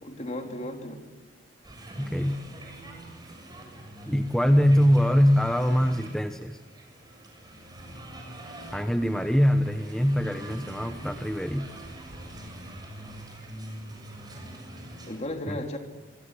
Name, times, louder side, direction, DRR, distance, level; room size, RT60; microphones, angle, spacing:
voice 1, 0.0-1.0 15.1-15.8, left 1 dB, 35° left, 4 dB, 3.6 m, -34 dB
sound 1, 1.6-15.2, right 1 dB, 20° right, 6.8 m, -43 dB
voice 2, 2.0-2.5 4.1-6.6 8.7-11.7 15.5-15.6, equal, 5° left, 6 dB, 1.0 m, -23 dB
27.5 x 25.5 x 7.9 m, 1.1 s
head